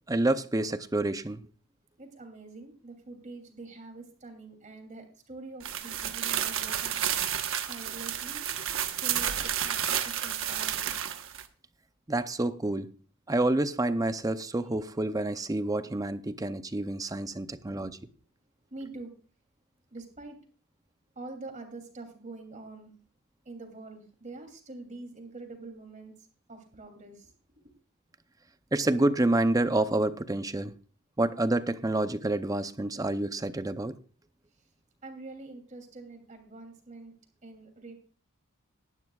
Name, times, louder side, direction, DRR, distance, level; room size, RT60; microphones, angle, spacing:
voice 1, 0.1-1.4 12.1-12.9 13.3-17.9 28.7-30.7 31.2-33.9, right 2 dB, 15° right, 0.6 m, -28 dB
voice 2, 2.0-7.0 7.7-8.4 9.0-10.9 17.3-17.4 17.7-18.0 18.7-19.1 19.9-20.4 21.1-22.9 23.4-27.3 27.6-27.7 35.0-37.1 37.4-38.0, right 3 dB, 35° right, 3.0 m, -45 dB
sound 1, 5.6-11.4, right 10 dB, 60° right, 1.2 m, -31 dB
18.0 x 12.0 x 2.4 m
head